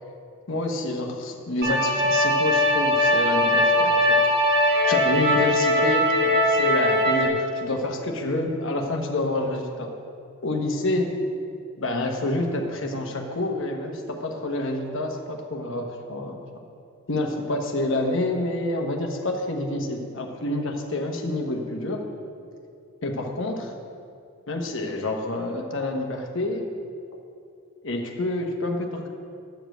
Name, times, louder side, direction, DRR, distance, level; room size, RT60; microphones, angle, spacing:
voice 1, 0.5-4.2 4.4-4.6 4.9-9.9 10.4-11.1 11.8-16.4 17.1-22.0 23.0-23.7 24.5-26.7 27.8-29.1, left 2 dB, 60° left, 2 dB, 1.1 m, -28 dB
sound 1, 1.6-7.3, left 1 dB, 45° right, 1.3 m, -20 dB
10.5 x 5.2 x 7.7 m, 2.4 s
head